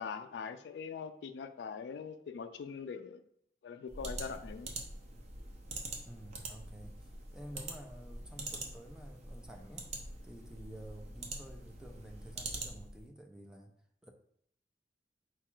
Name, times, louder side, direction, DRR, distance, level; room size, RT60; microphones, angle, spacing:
voice 1, 0.0-3.2 3.6-4.7, left 6 dB, 70° left, 0.3 m, -42 dB
sound 1, 3.9-13.0, right 2 dB, 40° right, 0.7 m, -44 dB
voice 2, 6.1-9.9 10.2-13.7 14.0-14.1, right 1 dB, 5° right, 0.4 m, -51 dB
4.6 x 2.4 x 4.4 m
head